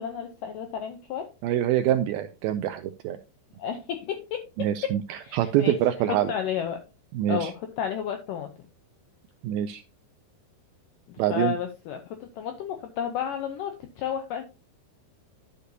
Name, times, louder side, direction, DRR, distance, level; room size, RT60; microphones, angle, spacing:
voice 1, 0.0-1.3 3.6-4.9 5.2-5.8 6.1-6.8 7.3-8.5 11.1-14.4, left 8 dB, 85° left, 6 dB, 1.9 m, -32 dB
voice 2, 1.4-3.2 4.6-6.3 7.1-7.5 9.4-9.8 11.2-11.5, right 11 dB, 90° right, 8 dB, 2.1 m, -25 dB
11.5 x 6.7 x 2.8 m, 0.30 s
omnidirectional pair, 4.8 m